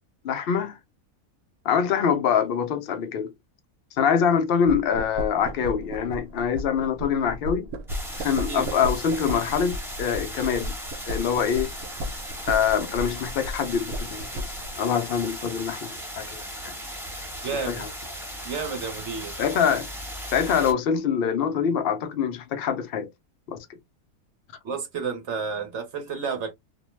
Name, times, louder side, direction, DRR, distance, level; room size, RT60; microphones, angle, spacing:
voice 1, 0.2-0.8 1.6-3.3 4.0-7.7 8.1-10.7 11.1-11.7 12.5-15.9 16.2-16.7 17.7-17.9 19.4-19.9 20.3-23.1 23.5-23.6, left 7 dB, 65° left, 0.5 m, -24 dB
sound 1, 4.7-14.7, equal, 85° right, 1.1 m, -35 dB
sound 2, 7.9-20.7, equal, ahead, 0.7 m, -37 dB
voice 2, 8.5-8.8 17.4-17.8 18.4-19.4 24.6-26.5, right 5 dB, 55° right, 1.0 m, -31 dB
2.6 x 2.0 x 3.0 m
omnidirectional pair, 1.5 m